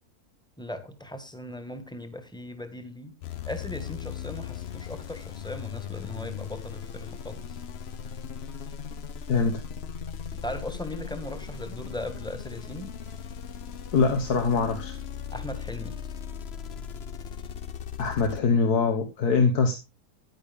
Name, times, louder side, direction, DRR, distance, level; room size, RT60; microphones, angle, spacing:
voice 1, 0.6-3.1 3.4-7.6 10.4-12.9 15.3-15.9, left 1 dB, 5° left, 9 dB, 1.3 m, -38 dB
sound 1, 3.2-18.4, left 7 dB, 50° left, 0.8 m, -38 dB
voice 2, 13.9-14.9 18.0-19.7, left 4 dB, 80° left, 5 dB, 1.7 m, -23 dB
10.5 x 10.0 x 3.5 m, 0.26 s
omnidirectional pair, 1.6 m